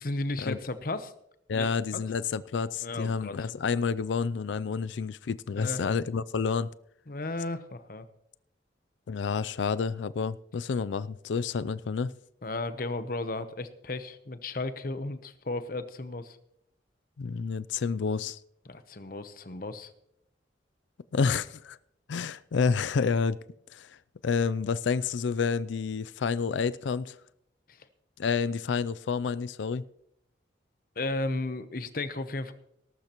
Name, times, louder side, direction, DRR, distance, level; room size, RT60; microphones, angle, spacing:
voice 1, 0.0-1.1 1.5-1.7 1.9-2.0 2.8-3.5 5.6-5.9 7.1-8.0 12.4-16.4 18.7-19.9 27.7-27.9 31.0-32.5, left 2 dB, 50° left, 0.9 m, -34 dB
voice 2, 1.5-6.7 9.1-12.1 17.2-18.4 21.1-21.8 22.1-23.4 23.7-24.0 24.2-27.2 28.2-29.9, left 5 dB, 80° left, 0.4 m, -29 dB
18.5 x 12.0 x 3.0 m
head